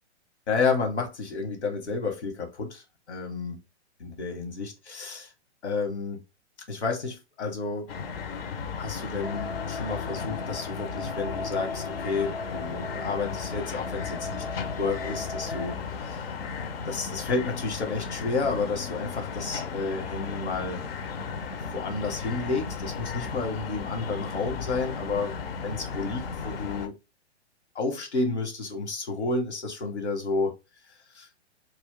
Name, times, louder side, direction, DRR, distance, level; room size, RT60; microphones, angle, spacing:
voice 1, 0.5-3.6 4.0-5.3 5.6-6.2 6.7-7.9 8.8-15.8 16.0-16.2 16.8-20.8 21.7-26.9 27.7-30.6 31.1-31.3, left 4 dB, 70° left, 1.2 m, -31 dB
sound 1, 7.9-26.9, left 5 dB, 55° left, 0.7 m, -35 dB
sound 2, 9.2-15.7, left 2 dB, 15° left, 0.4 m, -38 dB
2.5 x 2.3 x 3.6 m
figure-of-eight pair, 115°, 35 cm